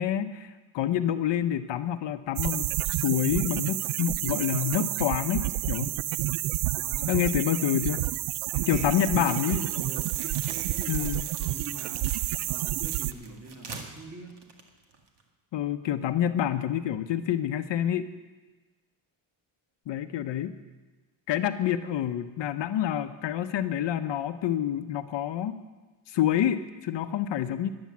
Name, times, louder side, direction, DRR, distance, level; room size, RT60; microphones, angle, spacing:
voice 1, 0.0-6.0 7.1-8.0 8.7-9.7 10.9-11.2 15.5-18.1 19.9-20.5 21.3-25.6 26.1-27.7, left 10 dB, 60° left, 9 dB, 0.8 m, -28 dB
sound 1, 2.4-13.1, right 15 dB, 80° right, 0.6 m, -29 dB
voice 2, 6.6-7.7 8.5-12.0 12.4-14.4, right 3 dB, 30° right, 2 dB, 2.0 m, -43 dB
sound 2, 9.2-15.3, right 4 dB, 55° right, 1.9 m, -47 dB
13.5 x 10.5 x 7.3 m, 1.2 s
cardioid pair, 145°, 49 cm